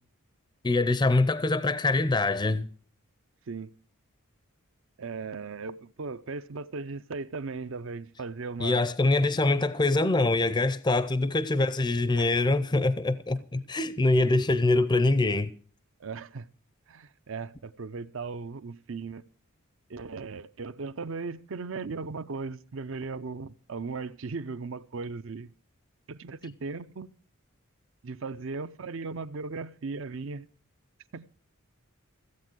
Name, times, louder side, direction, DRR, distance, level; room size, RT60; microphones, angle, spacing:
voice 1, 0.6-2.7 8.6-15.5, left 2 dB, 20° left, 0.5 m, -24 dB
voice 2, 5.0-8.9 12.2-12.6 16.0-16.5 16.9-19.2 19.9-25.5 26.1-27.1 28.0-30.5 31.1-31.3, right 4 dB, 60° right, 0.5 m, -37 dB
15.5 x 8.2 x 6.1 m
head